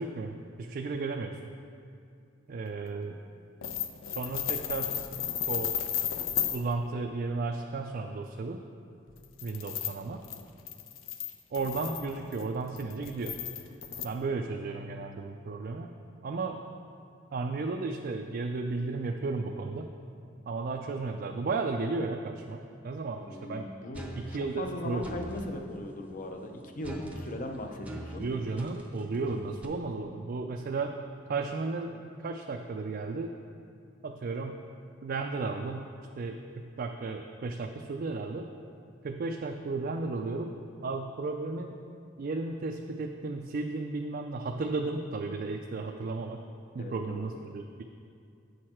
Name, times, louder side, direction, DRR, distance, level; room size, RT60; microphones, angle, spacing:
voice 1, 0.0-1.4 2.5-3.2 4.1-5.0 5.5-5.7 6.5-8.6 9.4-10.2 11.5-13.4 14.0-15.9 16.2-16.6 17.3-19.9 20.5-23.7 24.1-25.0 28.2-31.0 31.3-33.3 34.0-34.7 35.0-38.5 39.0-40.6 40.8-41.8 42.2-46.4 46.7-47.8, right 3 dB, 50° right, 2 dB, 0.4 m, -34 dB
sound 1, 3.6-6.6 9.1-14.1, left 9 dB, 80° left, 0.5 m, -34 dB
voice 2, 23.2-28.3 46.8-47.2, left 1 dB, 40° left, 4 dB, 0.7 m, -39 dB
sound 2, 23.9-25.5 26.8-29.6, right 1 dB, 5° right, 0.7 m, -42 dB
8.6 x 6.4 x 4.4 m, 2.4 s
head